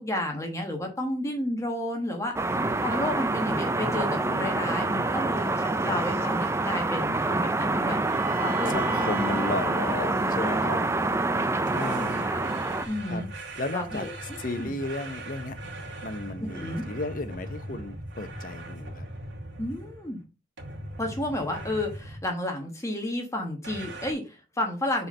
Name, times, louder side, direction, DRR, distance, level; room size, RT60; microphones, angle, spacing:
voice 1, 0.0-8.0 8.4-9.4 10.7-12.4 12.9-13.3 13.7-14.1 14.6-14.7 16.4-16.8 19.6-20.2 21.0-25.1, left 1 dB, 15° left, 1.3 m, -32 dB
sound 1, 2.3-12.8, right 2 dB, 15° right, 0.4 m, -26 dB
voice 2, 2.5-2.9 5.8-6.0 8.7-10.8 11.7-12.3 13.1-13.2 13.6-14.1 14.4-15.6 16.0-19.1, left 2 dB, 45° left, 0.8 m, -34 dB
Bowed string instrument, 8.0-11.9, right 4 dB, 45° right, 1.0 m, -43 dB
sound 2, 11.7-20.1 20.6-22.3 23.6-24.1, right 1 dB, 75° right, 2.1 m, -40 dB
5.6 x 4.4 x 5.5 m
head